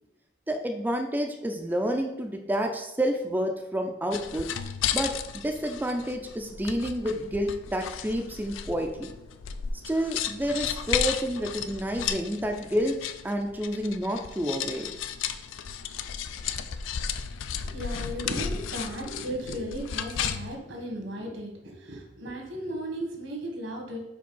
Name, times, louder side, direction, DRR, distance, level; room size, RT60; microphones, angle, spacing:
voice 1, 0.5-4.5 4.9-9.1 9.9-13.0 13.2-14.9, equal, 10° right, 3 dB, 0.4 m, -29 dB
sound 1, 4.1-20.6, left 8 dB, 85° left, 0.4 m, -34 dB
voice 2, 17.6-24.0, equal, 75° right, 1 dB, 1.5 m, -35 dB
5.1 x 4.2 x 5.4 m, 0.91 s
head